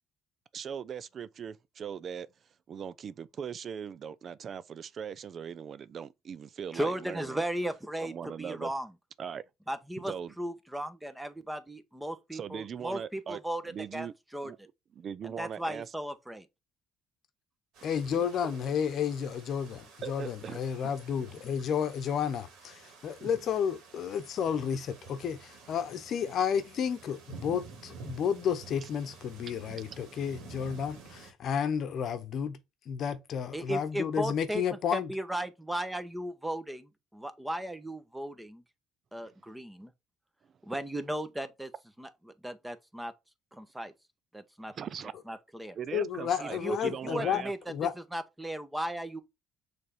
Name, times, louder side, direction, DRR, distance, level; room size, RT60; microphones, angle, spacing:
voice 1, 0.5-2.3 2.7-7.4 8.0-8.7 9.2-9.5 10.0-10.3 12.3-13.4 13.7-14.1 14.4-14.6 15.0-15.9 18.1-18.2 20.0-20.6 23.2-23.3 28.8-28.9 39.2-39.3 44.7-45.2 45.7-47.5, right 7 dB, 50° right, 0.4 m, -40 dB
voice 2, 6.7-8.9 9.7-13.6 13.9-14.5 15.2-16.5 33.5-34.6 34.9-38.6 39.1-39.9 40.7-41.7 42.0-43.1 43.5-43.9 44.3-44.7 45.3-45.8 46.4-47.6 48.1-49.2, right 1 dB, 10° right, 1.1 m, -36 dB
sound 1, 17.7-31.3, right 4 dB, 75° right, 2.0 m, -50 dB
voice 3, 17.8-32.6 32.9-35.1 45.9-47.4 47.7-47.9, left 8 dB, 60° left, 0.9 m, -31 dB
6.4 x 3.4 x 4.3 m
supercardioid pair, 65°, 0 cm